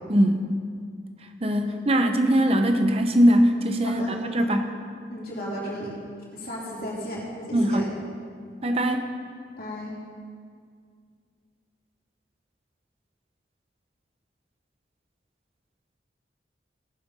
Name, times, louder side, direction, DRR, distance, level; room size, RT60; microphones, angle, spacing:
voice 1, 0.1-0.5 1.4-4.0 4.3-4.7 7.5-7.9 8.6-9.1, equal, 30° right, 6 dB, 0.7 m, -21 dB
voice 2, 3.8-4.6 5.1-5.9 6.3-7.8 9.6-9.9, equal, 50° left, -5 dB, 3.6 m, -35 dB
18.0 x 7.8 x 5.4 m, 2.1 s
head